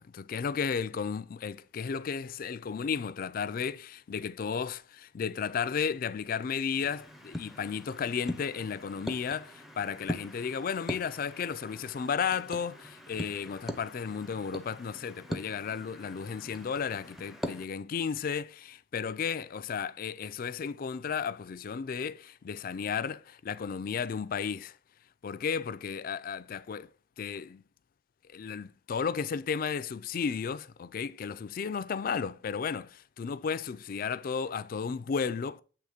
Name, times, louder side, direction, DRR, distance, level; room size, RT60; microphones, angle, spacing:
voice 1, 0.0-24.8 25.2-26.9 27.2-27.6 28.3-35.6, left 6 dB, 50° left, 0.4 m, -34 dB
sound 1, 6.8-17.7, equal, ahead, 0.5 m, -42 dB
7.7 x 3.0 x 5.0 m
head